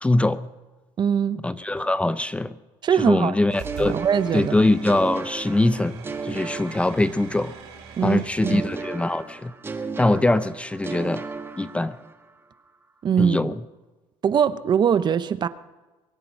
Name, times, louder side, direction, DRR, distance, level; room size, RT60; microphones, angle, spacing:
voice 1, 0.0-0.5 1.4-2.5 2.9-4.0 4.3-7.5 8.0-9.5 10.0-11.2 11.6-12.0 13.2-13.6, left 2 dB, 10° left, 0.6 m, -22 dB
voice 2, 1.0-1.4 2.8-3.3 3.8-4.5 8.0-8.6 13.0-13.5 14.2-15.5, right 8 dB, 40° right, 0.8 m, -22 dB
sound 1, 3.5-8.6, right 6 dB, 85° right, 5.4 m, -44 dB
sound 2, 3.6-7.6 8.4-12.3, right 4 dB, 20° right, 1.5 m, -35 dB
sound 3, 3.6-4.0 4.6-5.6 6.7-6.8 7.3-7.6 8.0-8.3 8.7-8.8, right 10 dB, 60° right, 2.6 m, -42 dB
23.0 x 9.5 x 6.0 m
supercardioid pair, 105°, 12 cm